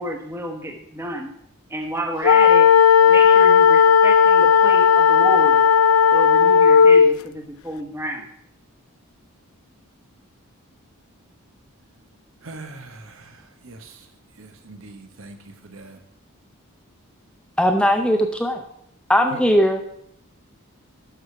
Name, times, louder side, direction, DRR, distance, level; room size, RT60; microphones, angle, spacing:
voice 1, 0.0-1.3 1.7-2.7 3.1-5.6 6.1-8.2, equal, 10° right, 3 dB, 1.2 m, -30 dB
sound 1, 2.2-7.2, left 7 dB, 70° left, 0.3 m, -14 dB
voice 2, 12.4-14.1 14.4-16.0 19.3-19.4, right 2 dB, 65° right, 6 dB, 1.1 m, -42 dB
voice 3, 17.6-18.6 19.1-19.8, equal, 5° left, 5 dB, 0.5 m, -18 dB
12.0 x 4.9 x 5.8 m, 0.73 s
head